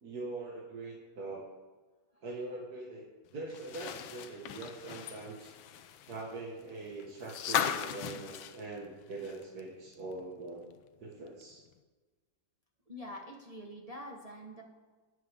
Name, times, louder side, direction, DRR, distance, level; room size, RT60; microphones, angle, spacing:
voice 1, 0.0-1.5 2.2-5.5 6.1-10.7 11.0-11.6, right 2 dB, 50° right, -4 dB, 2.2 m, -43 dB
sound 1, 3.5-9.6 9.9-10.0 11.4-11.5, left 9 dB, 80° left, 1.5 m, -38 dB
voice 2, 12.9-14.6, equal, 25° right, 1 dB, 1.0 m, -45 dB
19.5 x 7.5 x 3.6 m, 1.3 s
omnidirectional pair, 2.2 m